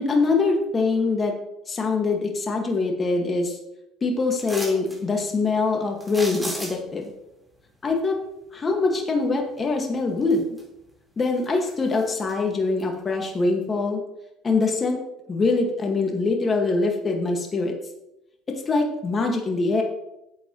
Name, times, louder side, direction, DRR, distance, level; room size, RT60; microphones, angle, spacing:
voice 1, 0.0-1.3 1.7-3.6 4.0-7.1 7.8-8.2 8.5-10.4 11.2-14.0 14.4-15.0 15.3-17.7 18.5-19.8, left 3 dB, 30° left, 2 dB, 1.9 m, -23 dB
sound 1, 4.4-5.0 6.0-7.0 9.6-9.7 10.2-10.9 11.2-12.3 12.8-12.9, right 1 dB, 10° right, 4.3 m, -35 dB
12.5 x 8.5 x 3.1 m, 0.87 s
supercardioid pair, 90°, 0 cm